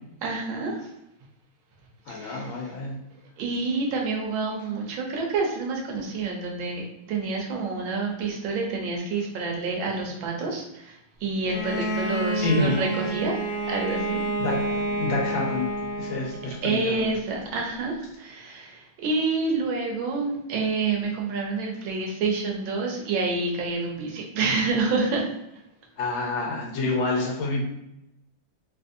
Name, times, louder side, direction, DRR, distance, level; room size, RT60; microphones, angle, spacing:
voice 1, 0.2-0.9 2.1-2.5 3.4-14.2 16.6-25.3, right 3 dB, 85° right, 0 dB, 1.5 m, -28 dB
voice 2, 2.1-3.0 12.4-12.8 14.4-15.7 15.9-17.2 26.0-27.6, left 2 dB, 90° left, -1 dB, 1.6 m, -28 dB
Bowed string instrument, 11.5-16.6, right 1 dB, 65° left, 1.1 m, -29 dB
3.8 x 2.6 x 2.5 m, 0.87 s
omnidirectional pair, 2.1 m